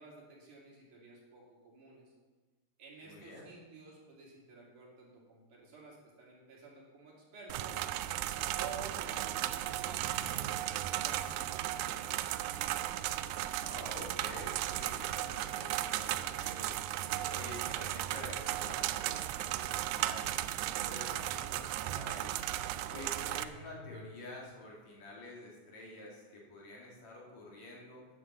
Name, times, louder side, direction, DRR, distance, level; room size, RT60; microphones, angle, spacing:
voice 1, 0.0-2.1 2.8-7.9 8.5-13.0, right 4 dB, 60° right, -3 dB, 4.1 m, -52 dB
voice 2, 3.0-3.5 13.6-22.4 22.9-28.1, left 1 dB, 55° left, -3 dB, 3.2 m, -49 dB
sound 1, 7.5-23.4, right 13 dB, 85° right, 2.3 m, -36 dB
sound 2, 14.0-15.7 17.9-21.7 22.0-25.0, left 3 dB, 90° left, 4.2 m, -59 dB
9.7 x 9.4 x 7.0 m, 1.3 s
omnidirectional pair, 4.2 m